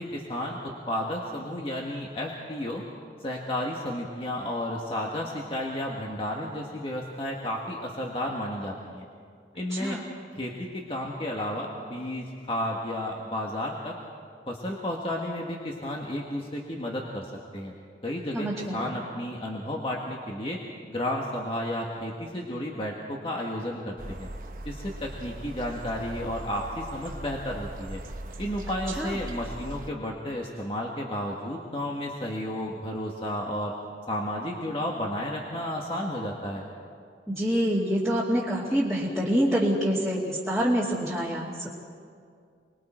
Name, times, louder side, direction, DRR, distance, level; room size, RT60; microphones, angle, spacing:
voice 1, 0.0-2.8 3.2-9.0 9.5-10.0 10.3-13.9 14.5-17.3 17.5-17.7 18.0-20.6 20.9-24.3 24.6-28.0 28.4-33.7 34.1-36.6, left 1 dB, 30° left, -1 dB, 1.7 m, -32 dB
voice 2, 9.7-10.0 18.3-18.9 29.0-29.2 37.3-41.7, equal, ahead, -9 dB, 2.4 m, -26 dB
sound 1, 24.0-29.9, right 1 dB, 45° right, 1.0 m, -40 dB
29.5 x 21.5 x 4.5 m, 2.3 s
head